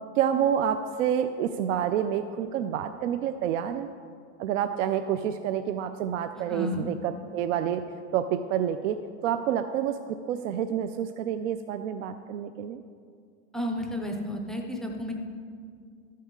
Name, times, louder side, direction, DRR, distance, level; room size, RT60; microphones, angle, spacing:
voice 1, 0.2-3.9 4.4-7.9 8.1-12.8, right 9 dB, 75° right, 9 dB, 0.6 m, -28 dB
voice 2, 6.5-6.9 13.5-15.1, equal, ahead, 2 dB, 0.4 m, -32 dB
12.0 x 8.4 x 3.7 m, 2.2 s
supercardioid pair, 155°, 38 cm